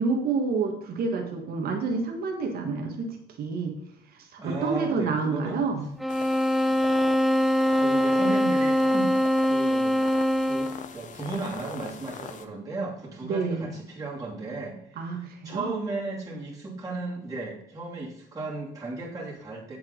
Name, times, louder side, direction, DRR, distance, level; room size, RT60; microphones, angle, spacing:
voice 1, 0.0-3.7 4.3-5.9 13.2-13.7 15.0-15.7, right 4 dB, 65° right, 3 dB, 1.6 m, -28 dB
voice 2, 4.4-5.6 6.7-6.8 7.8-9.2 9.5-10.0 10.4-19.8, right 3 dB, 20° right, -5 dB, 2.7 m, -35 dB
sound 1, 6.0-10.9, equal, ahead, 0.5 m, -23 dB
sound 2, 6.1-12.4, left 7 dB, 50° left, 0.8 m, -42 dB
7.8 x 7.2 x 3.9 m, 0.75 s
cardioid pair, 110°, 17 cm